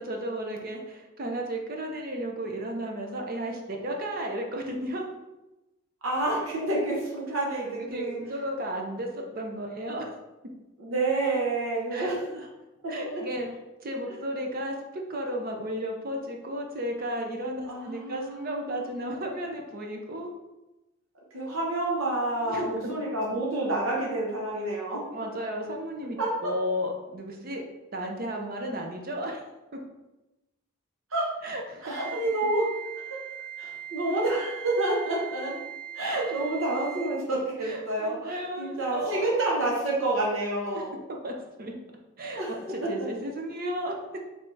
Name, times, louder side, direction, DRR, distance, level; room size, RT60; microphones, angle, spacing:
voice 1, 0.0-5.1 7.8-10.2 11.9-12.5 12.9-13.5 13.8-20.3 22.4-22.9 25.1-26.2 26.4-27.6 27.9-29.4 29.7-29.8 31.4-32.0 36.0-36.2 37.6-39.3 40.7-40.9 41.2-41.8 42.2-44.2, equal, 45° right, 2 dB, 0.6 m, -34 dB
voice 2, 6.0-8.2 10.8-12.2 13.0-13.2 17.7-18.9 21.3-25.0 26.2-26.5 31.1-31.2 31.8-32.7 33.6-35.6 35.9-41.0 42.3-42.5, right 2 dB, 85° right, -4 dB, 0.9 m, -28 dB
Wind instrument woodwind instrument, 31.9-37.3, right 9 dB, ahead, 0.8 m, -41 dB
3.4 x 3.3 x 4.0 m, 1.0 s
head